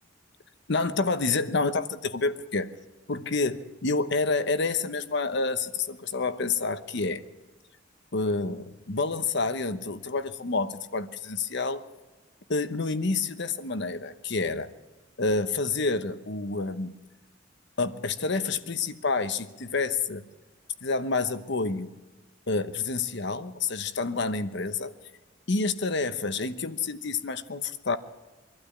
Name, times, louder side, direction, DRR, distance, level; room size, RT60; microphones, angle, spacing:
voice 1, 0.7-2.7 3.1-7.2 8.1-11.9 12.5-14.7 15.2-16.9 17.8-20.2 20.8-21.9 22.5-24.9 25.5-28.0, left 3 dB, 60° left, 11 dB, 1.0 m, -28 dB
24.5 x 12.0 x 9.8 m, 1.2 s
head